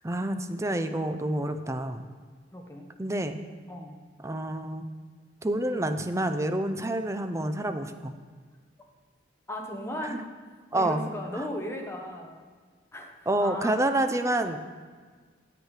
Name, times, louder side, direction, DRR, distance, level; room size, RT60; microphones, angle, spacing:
voice 1, 0.0-2.1 3.0-3.4 4.2-4.8 5.4-8.1 10.0-10.2 10.7-11.0 11.3-11.4 13.3-14.6, right 1 dB, 15° right, 8 dB, 0.5 m, -28 dB
voice 2, 2.5-2.9 3.7-4.0 9.5-10.3 10.7-12.4 12.9-13.1 13.4-13.7, left 1 dB, 15° left, 2 dB, 1.0 m, -36 dB
9.4 x 8.1 x 4.8 m, 1.5 s
head